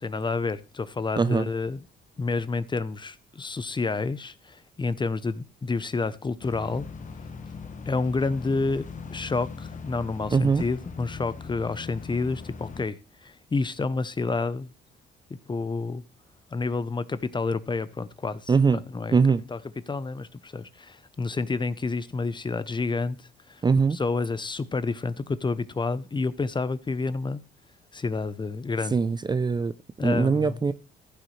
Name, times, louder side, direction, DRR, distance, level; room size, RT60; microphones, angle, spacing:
voice 1, 0.0-1.8 2.2-6.9 7.9-8.9 9.1-14.7 15.5-16.0 16.5-18.5 18.9-19.2 19.5-19.6 19.9-23.6 23.9-27.4 27.9-29.0 30.0-30.6, left 3 dB, 25° left, 0.6 m, -29 dB
voice 2, 1.2-1.5 10.3-10.6 18.5-18.8 19.1-19.4 23.6-24.0 28.9-29.7 30.0-30.7, right 5 dB, 20° right, 0.4 m, -22 dB
sound 1, 6.4-12.8, left 4 dB, 40° left, 1.2 m, -40 dB
15.0 x 6.3 x 3.1 m
cardioid pair, 90°, 20 cm